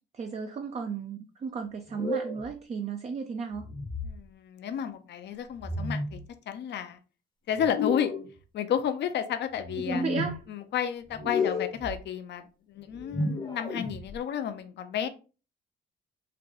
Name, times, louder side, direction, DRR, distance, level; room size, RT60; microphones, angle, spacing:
voice 1, 0.1-3.6 9.8-10.4 11.3-11.4, right 5 dB, 35° right, 5 dB, 0.4 m, -34 dB
sound 1, 1.9-2.5 3.5-4.2 5.6-6.2 7.6-8.3 9.6-10.3 11.1-12.0 12.9-14.1, left 3 dB, 25° left, 0.7 m, -32 dB
voice 2, 4.0-6.2 6.5-7.0 7.5-8.1 8.5-10.0 10.5-15.1, left 8 dB, 60° left, 8 dB, 0.5 m, -32 dB
3.8 x 2.2 x 3.2 m, 0.34 s
cardioid pair, 90°, 20 cm